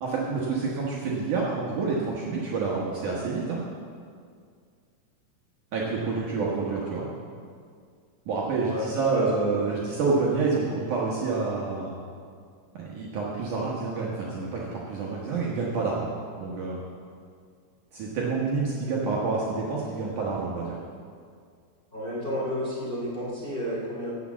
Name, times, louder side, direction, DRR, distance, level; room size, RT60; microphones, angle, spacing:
voice 1, 0.0-3.6 5.7-7.1 8.3-12.0 12.7-16.1 16.4-16.8 17.9-20.8, right 4 dB, 75° right, -5 dB, 1.8 m, -28 dB
voice 2, 8.7-9.3 9.7-9.8 21.9-24.1, equal, 30° left, -7 dB, 0.9 m, -31 dB
8.5 x 8.2 x 7.2 m, 2.1 s
omnidirectional pair, 5.3 m